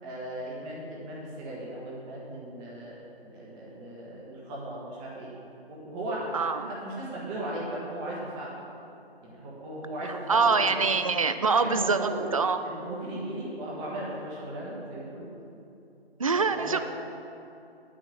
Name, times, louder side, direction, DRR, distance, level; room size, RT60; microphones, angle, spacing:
voice 1, 0.0-3.0 3.2-5.3 5.7-8.6 9.2-11.1 11.5-12.3 12.6-15.3 16.3-16.8, right 1 dB, 15° right, -5 dB, 1.5 m, -37 dB
voice 2, 6.3-6.7 10.3-12.6 16.2-16.8, right 4 dB, 35° right, 10 dB, 0.4 m, -24 dB
8.9 x 6.4 x 7.4 m, 2.7 s
figure-of-eight pair, 150°, 32 cm